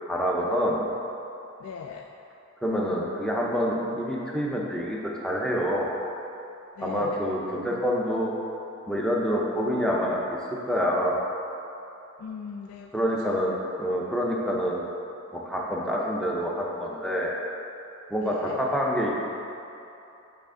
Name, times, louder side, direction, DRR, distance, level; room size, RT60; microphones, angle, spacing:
voice 1, 0.1-0.9 2.6-5.9 6.8-8.3 8.9-11.2 12.9-14.8 15.3-17.4 18.1-19.1, equal, 5° left, -3 dB, 0.5 m, -27 dB
voice 2, 1.6-2.1 6.8-7.3 12.2-13.6 18.2-18.7, left 6 dB, 85° left, 3 dB, 0.3 m, -40 dB
7.9 x 3.4 x 3.7 m, 2.9 s
head